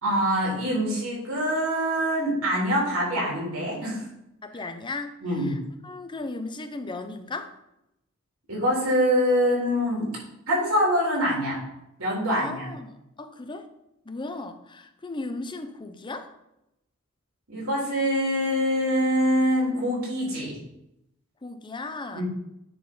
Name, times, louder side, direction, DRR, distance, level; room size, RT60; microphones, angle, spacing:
voice 1, 0.0-4.0 5.2-5.5 8.5-10.1 10.5-11.6 12.0-12.7 17.5-20.6 22.1-22.2, equal, 85° right, -3 dB, 3.5 m, -24 dB
voice 2, 4.4-7.5 12.3-13.7 14.1-16.3 21.4-22.2, left 3 dB, 20° left, 8 dB, 0.6 m, -36 dB
9.5 x 4.0 x 5.4 m, 0.85 s
head